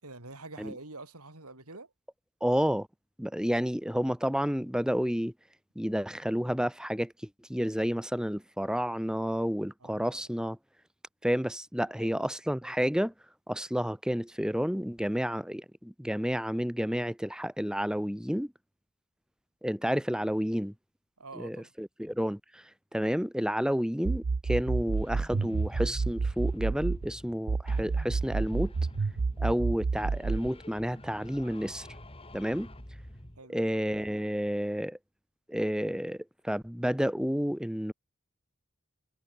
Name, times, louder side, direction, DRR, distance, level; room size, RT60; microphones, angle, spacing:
voice 1, 0.0-1.9 9.8-10.2 12.0-12.3 21.2-21.7 33.4-33.6, right 3 dB, 90° right, 5.4 m, -46 dB
voice 2, 2.4-2.9 3.2-5.3 5.8-10.6 11.2-13.1 13.5-18.5 19.6-20.7 21.3-28.7 29.4-31.9 32.3-32.7 33.5-35.0 35.5-37.9, equal, 5° right, 1.7 m, -30 dB
sound 1, 24.1-27.1 27.5-30.5, right 4 dB, 60° right, 0.5 m, -29 dB
sound 2, 24.9-27.4 27.7-29.7 30.0-33.4, left 1 dB, 25° left, 6.7 m, -47 dB
head